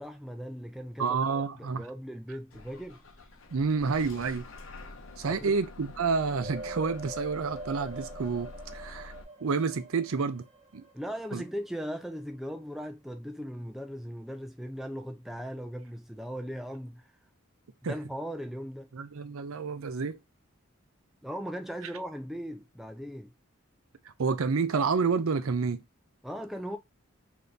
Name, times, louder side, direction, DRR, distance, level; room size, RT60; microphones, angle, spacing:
voice 1, 0.0-3.0 5.2-5.5 10.9-17.0 17.8-18.9 21.2-23.3 26.2-26.8, equal, ahead, 0.3 m, -38 dB
voice 2, 1.0-1.9 3.5-4.5 5.2-9.1 9.4-10.4 10.7-10.8 11.3-11.4 17.8-18.0 18.9-20.2 24.2-25.8, right 5 dB, 70° right, 0.5 m, -29 dB
Bus / Engine starting, 2.5-9.2, left 2 dB, 65° left, 0.7 m, -47 dB
sound 1, 6.4-11.1 11.4-11.5, right 1 dB, 30° right, 0.7 m, -43 dB
3.4 x 2.7 x 3.9 m
head